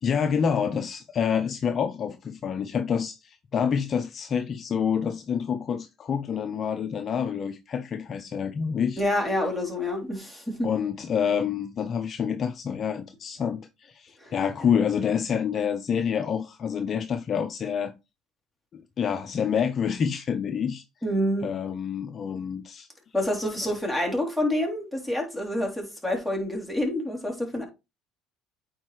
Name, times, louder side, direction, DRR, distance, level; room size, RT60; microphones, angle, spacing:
voice 1, 0.0-9.0 10.6-17.9 18.7-20.8 21.4-22.9, left 7 dB, 45° left, 0.7 m, -27 dB
voice 2, 9.0-10.7 14.2-14.3 21.0-21.5 23.1-27.6, left 1 dB, 5° right, 3.4 m, -27 dB
8.8 x 4.3 x 3.2 m
supercardioid pair, 85°, 0 cm